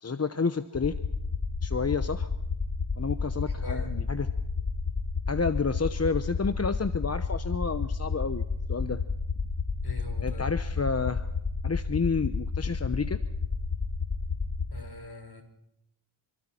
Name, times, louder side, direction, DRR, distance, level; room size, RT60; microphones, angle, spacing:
voice 1, 0.0-1.0 1.6-2.3 3.0-4.3 5.3-9.0 10.2-11.3 11.6-13.2, left 4 dB, 30° left, 11 dB, 0.8 m, -30 dB
sound 1, 0.7-14.7, left 5 dB, 65° left, 2.1 m, -30 dB
voice 2, 3.6-4.1 9.8-10.5 14.7-15.4, left 2 dB, 50° left, 5 dB, 4.8 m, -42 dB
27.0 x 24.5 x 4.4 m, 0.82 s
cardioid pair, 50°, 49 cm